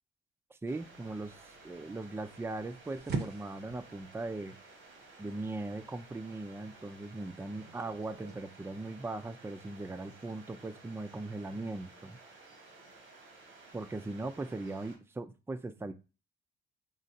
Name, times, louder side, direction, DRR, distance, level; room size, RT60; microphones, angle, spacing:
voice 1, 0.5-4.6 5.2-12.2 13.7-15.9, right 2 dB, 10° right, 10 dB, 0.5 m, -39 dB
sound 1, 0.7-15.0, right 3 dB, 80° right, 1.5 m, -55 dB
sound 2, 0.8-8.4, right 4 dB, 55° right, 0.8 m, -45 dB
5.2 x 3.1 x 2.8 m, 0.31 s
cardioid pair, 90°, 20 cm